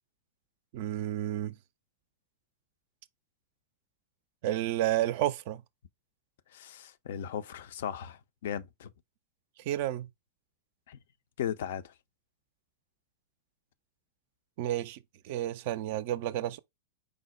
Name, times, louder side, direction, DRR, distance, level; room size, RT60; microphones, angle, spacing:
voice 1, 0.7-1.6 4.4-5.6 9.7-10.1 14.6-15.0 15.2-16.6, right 13 dB, 50° right, 0.3 m, -31 dB
voice 2, 6.5-8.9 10.9-11.0 11.4-11.9, left 9 dB, 60° left, 0.4 m, -37 dB
4.9 x 2.0 x 4.2 m
figure-of-eight pair, 90°, 0 cm